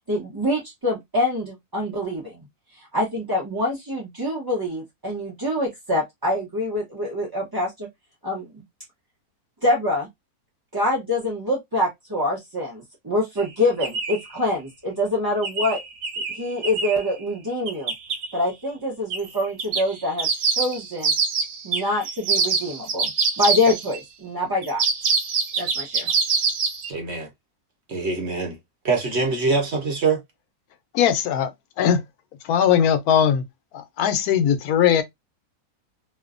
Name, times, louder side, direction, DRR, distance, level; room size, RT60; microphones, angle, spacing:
voice 1, 0.1-2.4 2.8-7.9 8.2-8.6 9.6-10.1 10.7-15.8 16.3-17.9 18.3-21.1 21.6-23.1 23.4-24.8 25.6-26.1, left 1 dB, 25° right, 0.5 m, -25 dB
sound 1, 13.4-13.5 13.8-14.3 15.4-17.1 17.7-18.3 19.1-19.3 19.6-24.0 24.6-26.9, right 5 dB, 85° right, 1.2 m, -24 dB
voice 2, 26.9-27.3 27.9-28.6 28.8-30.2, right 4 dB, 55° right, 1.0 m, -24 dB
voice 3, 30.9-31.5 31.8-32.0 32.4-33.4 33.7-35.0, left 8 dB, 80° left, 1.1 m, -19 dB
3.0 x 2.1 x 2.4 m
omnidirectional pair, 1.6 m